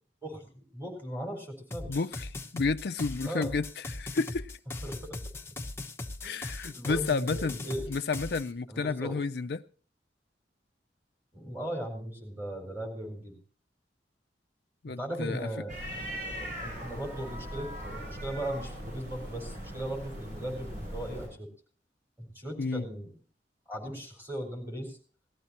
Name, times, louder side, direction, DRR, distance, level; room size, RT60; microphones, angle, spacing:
voice 1, 0.2-2.0 3.2-3.5 4.8-5.2 6.2-6.4 6.7-7.9 8.7-9.2 11.3-13.4 14.9-15.7 16.2-21.5 22.2-23.1 23.7-25.0, right 1 dB, 10° right, 4.3 m, -38 dB
sound 1, 1.7-8.5, left 2 dB, 15° left, 0.9 m, -39 dB
voice 2, 1.9-4.5 6.2-7.6 7.9-9.6 14.8-15.5 22.6-22.9, left 4 dB, 65° left, 0.5 m, -31 dB
sound 2, 15.7-21.3, equal, 50° right, 7.3 m, -40 dB
18.5 x 13.5 x 2.9 m
head